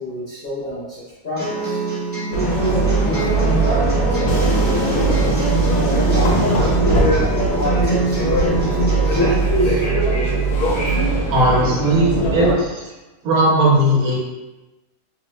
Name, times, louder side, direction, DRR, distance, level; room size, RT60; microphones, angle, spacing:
voice 1, 0.0-1.8 2.7-9.8, left 1 dB, 50° left, -9 dB, 0.6 m, -29 dB
sound 1, 1.4-9.3, right 2 dB, 10° right, 0.6 m, -26 dB
sound 2, 2.3-12.6, right 2 dB, 75° left, 1.1 m, -19 dB
voice 2, 11.3-12.9 13.2-14.2, right 1 dB, 80° right, -4 dB, 1.2 m, -17 dB
2.9 x 2.0 x 3.0 m, 1.1 s
omnidirectional pair, 1.5 m